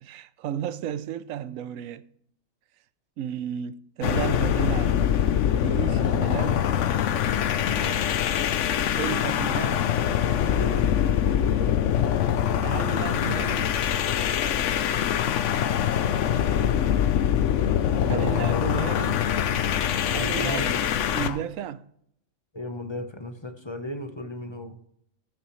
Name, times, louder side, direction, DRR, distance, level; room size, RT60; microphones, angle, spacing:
voice 1, 0.0-2.0 3.2-5.0 5.6-6.7 9.0-9.9 12.6-13.8 18.1-19.3 20.1-20.7 21.1-21.8, right 10 dB, 75° right, 1.0 m, -33 dB
sound 1, 4.0-21.4, left 9 dB, 70° left, 1.0 m, -24 dB
voice 2, 7.7-8.0 10.5-11.8 18.0-18.7 20.1-20.9 22.5-24.8, left 1 dB, 25° left, 0.9 m, -35 dB
14.5 x 7.1 x 3.1 m
omnidirectional pair, 1.4 m